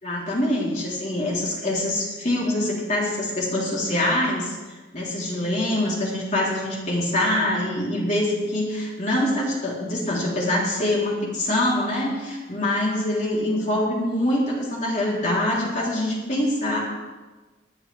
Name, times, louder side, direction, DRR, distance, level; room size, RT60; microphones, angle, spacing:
voice 1, 0.0-4.6 4.9-16.8, left 1 dB, 45° left, -4 dB, 3.7 m, -24 dB
20.5 x 9.5 x 3.5 m, 1.3 s
head